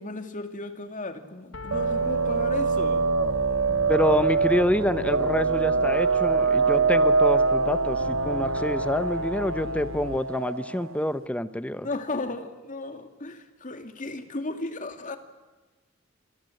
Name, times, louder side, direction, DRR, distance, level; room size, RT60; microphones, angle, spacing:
voice 1, 0.0-3.0 11.8-15.2, left 2 dB, 40° left, 7 dB, 2.4 m, -35 dB
Piano, 1.5-10.2, left 2 dB, 75° left, 0.9 m, -38 dB
sound 1, 1.7-11.0, right 4 dB, 90° right, 1.1 m, -24 dB
voice 2, 3.9-11.9, left 1 dB, 5° left, 13 dB, 0.8 m, -27 dB
28.0 x 22.0 x 7.8 m, 1.2 s
head